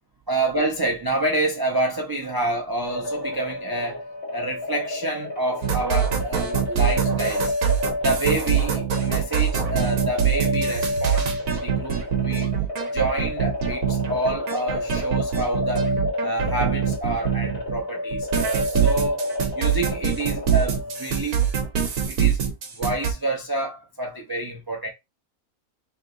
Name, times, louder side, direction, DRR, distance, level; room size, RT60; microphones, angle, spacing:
voice 1, 0.3-4.0 4.3-7.5 8.0-12.5 12.9-15.9 16.2-19.2 19.6-21.4 22.1-22.4 22.8-24.9, right 2 dB, 30° right, 0.4 m, -28 dB
sound 1, 2.8-21.3, left 1 dB, 40° left, 1.8 m, -30 dB
sound 2, 5.6-17.8 18.1-23.1, right 8 dB, 70° right, 1.3 m, -24 dB
3.3 x 2.8 x 3.7 m
omnidirectional pair, 1.5 m